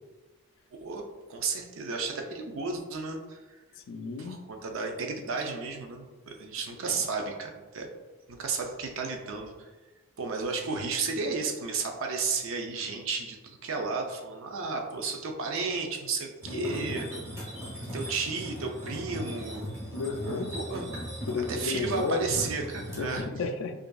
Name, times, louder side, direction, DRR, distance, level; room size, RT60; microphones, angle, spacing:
voice 1, 1.3-3.6 4.2-7.9 8.3-9.7 10.2-17.1 17.8-19.7 20.5-20.9 21.4-23.3, right 4 dB, 60° right, 3 dB, 0.5 m, -33 dB
voice 2, 3.9-4.4 6.9-7.0 16.5-17.0 19.9-20.5 21.3-22.2 23.0-23.7, left 4 dB, 60° left, 6 dB, 0.4 m, -33 dB
sound 1, 16.4-23.2, equal, 15° right, 1.0 m, -38 dB
4.8 x 2.6 x 2.3 m, 1.2 s
head